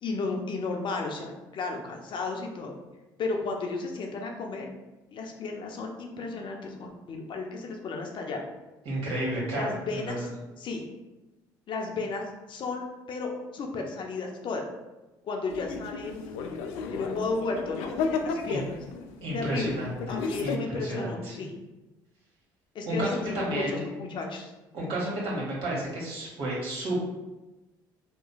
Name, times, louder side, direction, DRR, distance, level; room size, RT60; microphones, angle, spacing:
voice 1, 0.0-2.7 3.2-4.7 5.1-8.4 9.5-10.2 10.6-10.9 11.7-12.2 12.5-14.7 15.2-16.4 16.9-17.9 18.2-18.8 19.3-19.8 20.1-21.5 22.7-24.5, left 3 dB, 55° left, 2 dB, 0.7 m, -33 dB
voice 2, 8.8-10.2 18.5-18.6 19.2-20.0 20.4-21.3 22.8-23.1 23.3-23.8 24.7-27.0, right 1 dB, 65° right, -4 dB, 1.5 m, -31 dB
sound 1, 15.5-20.6, left 5 dB, 80° left, 0.4 m, -34 dB
3.0 x 2.1 x 3.9 m, 1.1 s
hypercardioid pair, 65°, 10 cm